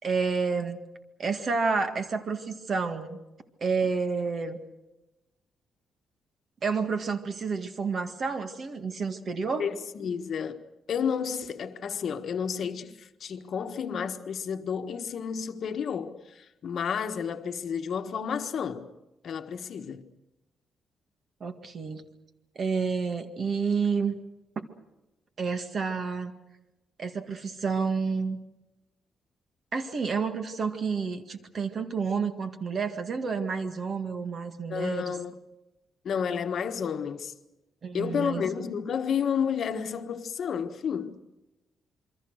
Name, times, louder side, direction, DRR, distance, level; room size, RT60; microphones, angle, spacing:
voice 1, 0.0-0.8 1.2-3.2 3.6-4.6 6.6-9.7 21.4-22.0 22.6-24.2 24.6-24.7 25.4-26.3 27.0-28.4 29.7-35.1 37.8-38.4, right 5 dB, 35° right, 1.9 m, -29 dB
voice 2, 9.6-18.9 19.2-20.1 34.7-35.4 36.0-37.3 37.9-41.2, left 7 dB, 45° left, 1.5 m, -31 dB
27.5 x 24.0 x 6.4 m
cardioid pair, 180°, 0 cm